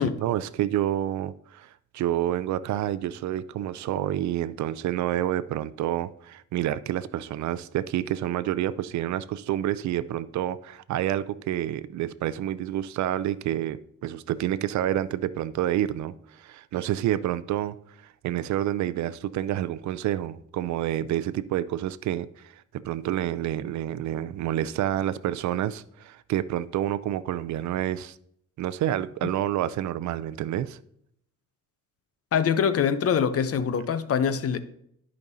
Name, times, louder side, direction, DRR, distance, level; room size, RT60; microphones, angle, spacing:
voice 1, 0.0-28.2 28.6-30.8, right 12 dB, 70° right, 0.5 m, -28 dB
voice 2, 32.3-34.6, left 7 dB, 50° left, 0.7 m, -24 dB
13.5 x 5.2 x 2.7 m
cardioid pair, 90°, 30 cm